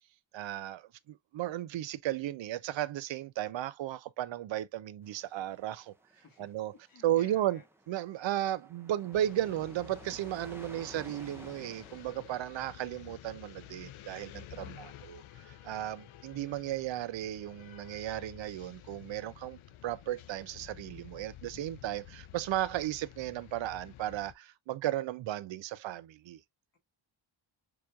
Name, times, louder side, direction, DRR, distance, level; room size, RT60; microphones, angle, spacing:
voice 1, 0.3-5.9 6.4-6.7 7.0-7.6 7.9-26.4, right 13 dB, 65° right, 0.5 m, -35 dB
sound 1, 5.0-13.1, right 1 dB, 5° right, 0.5 m, -55 dB
voice 2, 6.1-6.5 6.8-7.6 14.6-15.1, left 4 dB, 45° left, 1.7 m, -55 dB
sound 2, 9.1-24.3, left 12 dB, 75° left, 0.6 m, -51 dB
6.9 x 3.0 x 2.3 m
wide cardioid pair, 165°, 49 cm